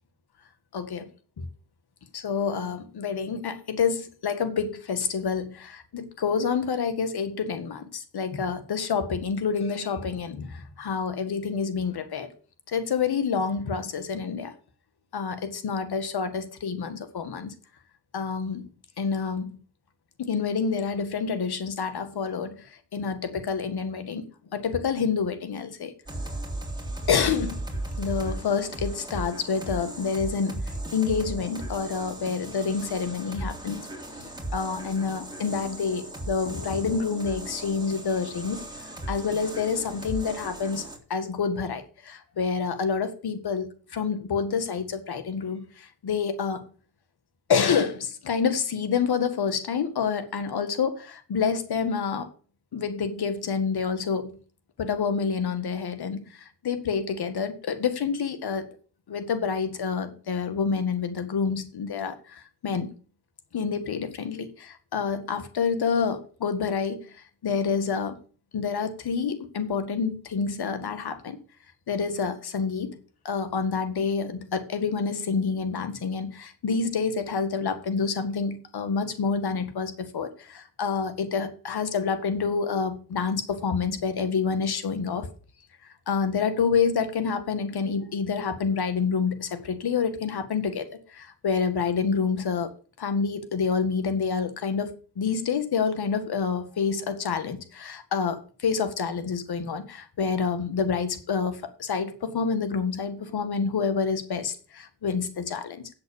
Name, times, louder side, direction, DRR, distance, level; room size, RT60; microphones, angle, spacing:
voice 1, 0.7-1.0 1.4-1.5 2.1-12.3 12.7-14.5 15.1-17.5 18.1-18.7 19.0-19.6 20.2-22.7 22.9-24.2 24.5-25.9 27.1-27.6 28.0-33.8 34.2-38.6 39.1-40.8 41.1-46.7 47.5-52.3 52.7-54.3 54.8-56.2 56.6-58.7 59.1-62.9 63.5-67.0 67.4-68.2 68.5-71.4 71.9-73.0 73.3-85.3 86.1-90.8 91.1-92.7 93.0-105.9, left 5 dB, 70° left, 1.9 m, -28 dB
sound 1, 26.1-41.0, right 1 dB, 10° right, 3.5 m, -36 dB
8.3 x 8.0 x 7.2 m
supercardioid pair, 55°, 39 cm